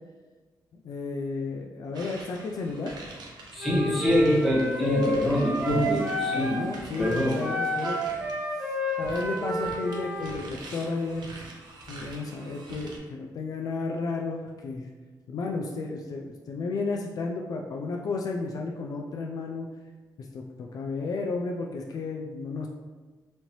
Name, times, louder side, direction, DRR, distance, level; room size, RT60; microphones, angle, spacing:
voice 1, 0.7-2.9 5.0-5.1 5.6-8.0 8.5-8.7 9.0-11.4 11.9-14.9 15.3-19.7 20.2-22.7, left 3 dB, 60° left, 1 dB, 0.4 m, -33 dB
sound 1, 1.9-8.4 8.9-13.0, right 2 dB, 75° right, 0.7 m, -45 dB
voice 2, 3.5-6.6 7.0-7.4, left 1 dB, ahead, -7 dB, 1.4 m, -25 dB
Wind instrument woodwind instrument, 3.6-6.7 7.0-10.4, equal, 20° right, 1.0 m, -30 dB
4.2 x 2.8 x 3.0 m, 1.3 s
cardioid pair, 115°, 7 cm